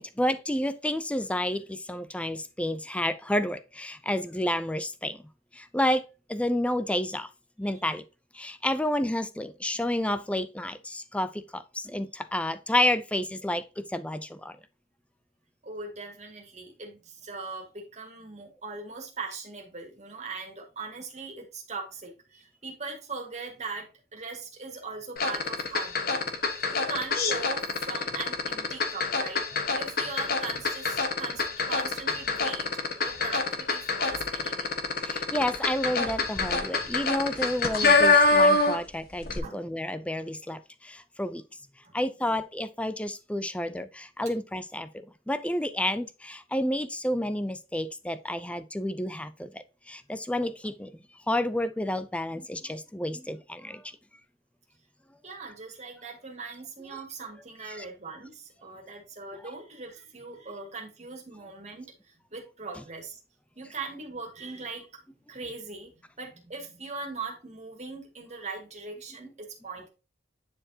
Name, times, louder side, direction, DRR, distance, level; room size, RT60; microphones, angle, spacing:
voice 1, 0.0-5.2 5.5-6.0 6.3-7.3 7.6-8.0 8.3-14.5 35.0-41.4 41.9-50.9 51.3-53.8 57.6-57.9 69.2-69.3, left 1 dB, 5° left, 0.5 m, -30 dB
voice 2, 15.6-26.2 26.7-29.4 29.8-32.7 33.0-34.7 38.6-38.7 39.4-39.6 42.2-42.4 55.2-61.9 62.3-63.2 63.6-64.9 65.3-65.9 66.2-69.9, right 4 dB, 40° right, 2.2 m, -40 dB
sound 1, 25.2-38.9 39.2-39.4, left 3 dB, 55° left, 1.3 m, -25 dB
9.9 x 4.5 x 2.8 m
head